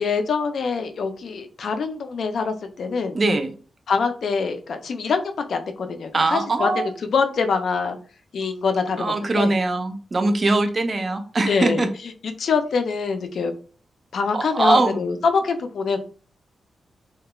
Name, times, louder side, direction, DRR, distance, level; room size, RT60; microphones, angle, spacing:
voice 1, 0.0-3.2 3.9-6.8 7.1-8.0 8.3-9.5 11.5-11.9 12.4-13.5 14.1-16.0, left 5 dB, 60° left, 7 dB, 0.3 m, -24 dB
voice 2, 3.1-3.5 6.1-6.9 9.0-11.9 14.3-15.0, right 2 dB, 30° right, 7 dB, 0.3 m, -21 dB
2.3 x 2.1 x 2.9 m, 0.41 s
wide cardioid pair, 165°, 0 cm